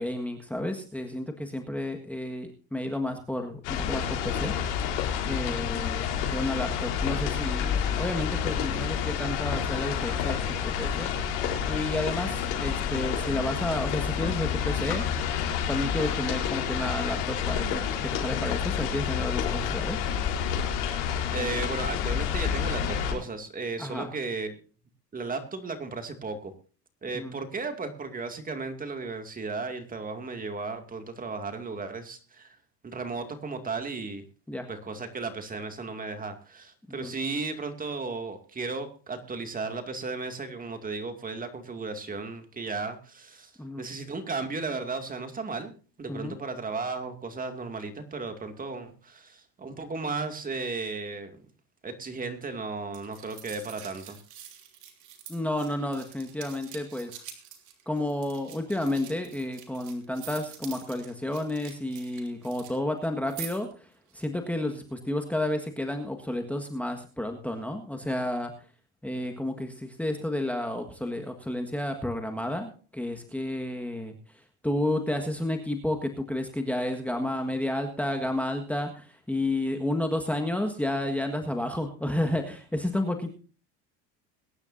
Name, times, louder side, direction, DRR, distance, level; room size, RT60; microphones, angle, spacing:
voice 1, 0.0-4.5 5.3-11.1 11.7-15.0 15.7-20.0 23.8-24.1 27.1-27.4 34.5-34.7 36.9-37.1 43.6-43.9 46.1-46.3 55.3-57.1 57.9-63.9 64.1-68.5 69.0-74.1 74.6-83.3, left 1 dB, 5° left, 4 dB, 1.6 m, -31 dB
sound 1, 3.6-23.1, left 8 dB, 90° left, 4.0 m, -29 dB
voice 2, 21.3-24.6 25.1-26.5 27.0-32.6 32.8-34.2 34.7-43.5 43.8-45.7 46.0-51.3 51.8-54.2, right 3 dB, 25° right, 7 dB, 2.3 m, -35 dB
sound 2, 52.9-62.8 63.0-63.7 64.1-64.2, right 10 dB, 55° right, 3.1 m, -46 dB
22.0 x 10.5 x 2.7 m, 0.38 s
supercardioid pair, 110°, 34 cm